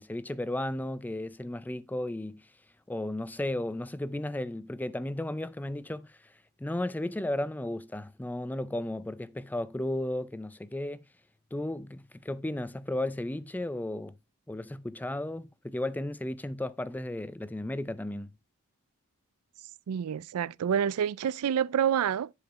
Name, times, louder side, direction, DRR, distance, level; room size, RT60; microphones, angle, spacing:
voice 1, 0.0-2.4 2.9-6.2 6.6-11.0 11.5-14.1 14.5-18.3, left 1 dB, 10° left, 0.4 m, -34 dB
voice 2, 19.9-22.3, right 8 dB, 80° right, 0.4 m, -28 dB
10.5 x 4.9 x 3.6 m
head